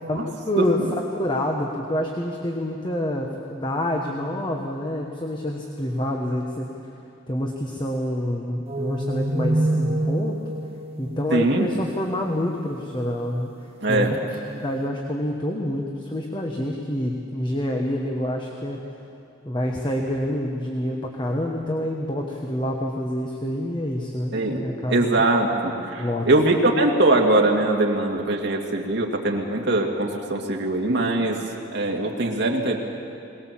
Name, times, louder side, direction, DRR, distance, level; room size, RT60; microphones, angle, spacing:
voice 1, 0.0-6.7 7.3-10.4 11.0-13.5 13.9-14.1 14.5-18.8 19.4-25.1 26.0-26.3, left 1 dB, 25° left, 1 dB, 1.3 m, -27 dB
sound 1, 8.7-12.1, right 1 dB, 35° right, 1.4 m, -26 dB
voice 2, 11.3-11.7 13.8-14.1 24.3-24.6 24.9-31.4 31.7-32.8, right 2 dB, 65° right, 1 dB, 2.2 m, -22 dB
21.5 x 19.0 x 7.5 m, 2.7 s
head